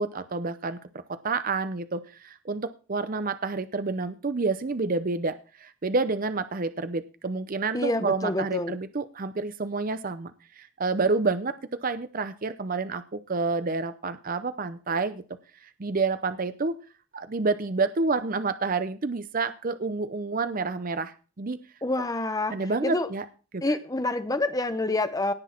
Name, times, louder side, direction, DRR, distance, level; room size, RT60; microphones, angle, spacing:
voice 1, 0.0-15.2 15.6-16.8 17.1-21.6 22.5-23.3 23.5-23.6, right 3 dB, 40° right, 12 dB, 0.6 m, -29 dB
voice 2, 7.7-8.8 21.8-22.6 22.8-23.1 23.6-25.3, left 2 dB, 15° left, 11 dB, 0.8 m, -27 dB
17.5 x 6.1 x 4.4 m, 0.35 s
head